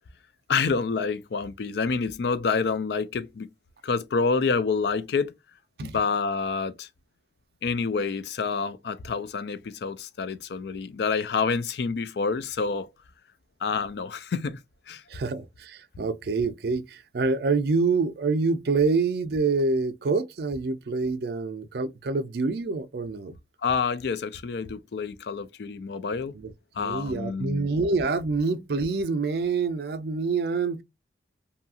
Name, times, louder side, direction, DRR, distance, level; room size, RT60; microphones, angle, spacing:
voice 1, 0.5-3.5 3.8-5.3 5.8-6.9 7.6-12.9 13.6-14.6 14.9-15.0 23.6-26.3 26.7-27.7, left 5 dB, 65° left, 0.4 m, -28 dB
voice 2, 15.1-23.3 26.4-26.5 26.8-30.8, right 4 dB, 60° right, 0.4 m, -26 dB
2.7 x 2.4 x 2.6 m
head